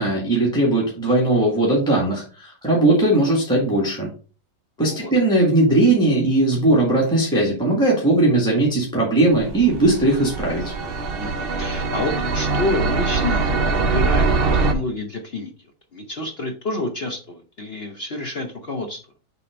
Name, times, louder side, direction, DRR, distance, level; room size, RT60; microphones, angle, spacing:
voice 1, 0.0-4.1 4.8-10.7, right 2 dB, ahead, -5 dB, 1.5 m, -19 dB
voice 2, 4.8-5.1 11.2-15.5 15.9-19.0, left 2 dB, 55° left, 4 dB, 0.6 m, -29 dB
sound 1, 9.3-14.7, right 3 dB, 70° right, 0.5 m, -22 dB
6.8 x 3.5 x 5.0 m, 0.38 s
omnidirectional pair, 2.1 m